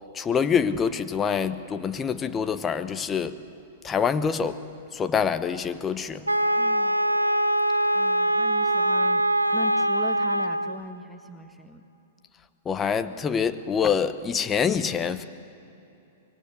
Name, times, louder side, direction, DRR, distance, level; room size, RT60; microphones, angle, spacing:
voice 1, 0.1-3.4 3.8-4.6 4.9-6.2 12.6-15.3, left 6 dB, 20° left, 11 dB, 1.0 m, -25 dB
Wind instrument woodwind instrument, 6.3-10.8, right 1 dB, 90° right, 0.7 m, -23 dB
voice 2, 6.6-7.0 7.9-9.2 9.5-11.8, left 1 dB, 5° left, 5 dB, 1.6 m, -39 dB
25.0 x 22.5 x 8.0 m, 2.9 s
figure-of-eight pair, 105°, 0 cm